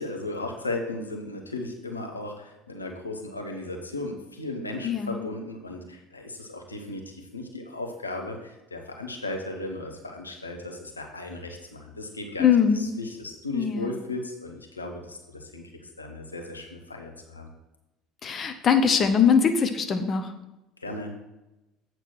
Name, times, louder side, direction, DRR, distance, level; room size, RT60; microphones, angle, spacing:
voice 1, 0.0-12.5 12.7-15.6 16.0-17.5 20.8-21.1, left 2 dB, 85° left, 2 dB, 0.9 m, -36 dB
voice 2, 4.8-5.3 12.4-12.8 13.5-14.0 18.2-20.3, left 7 dB, 40° left, 7 dB, 0.8 m, -22 dB
8.0 x 4.5 x 6.2 m, 0.97 s
figure-of-eight pair, 60°, 0 cm